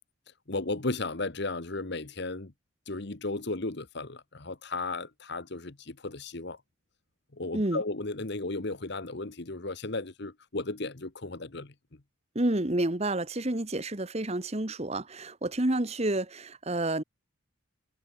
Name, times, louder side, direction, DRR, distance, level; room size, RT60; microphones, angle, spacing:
voice 1, 0.5-2.5 2.9-6.6 7.3-11.7, left 2 dB, 50° left, 1.3 m, -35 dB
voice 2, 12.3-17.0, right 1 dB, 30° right, 1.2 m, -29 dB
head